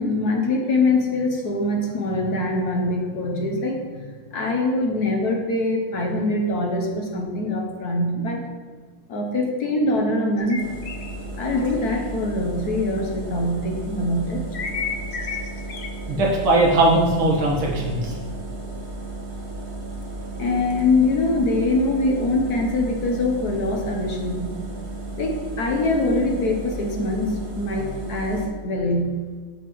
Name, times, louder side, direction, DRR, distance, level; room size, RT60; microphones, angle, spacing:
voice 1, 0.0-8.4 9.1-10.6 11.4-14.4 20.3-24.5 25.2-29.2, left 2 dB, 60° left, 1 dB, 1.2 m, -23 dB
sound 1, 10.4-12.0 14.5-15.9, left 5 dB, 75° left, 0.5 m, -32 dB
sound 2, 10.6-28.5, right 2 dB, 40° right, 1.3 m, -34 dB
voice 2, 16.1-18.2, right 2 dB, 85° right, -2 dB, 2.3 m, -19 dB
8.1 x 8.0 x 3.1 m, 1.5 s
omnidirectional pair, 2.2 m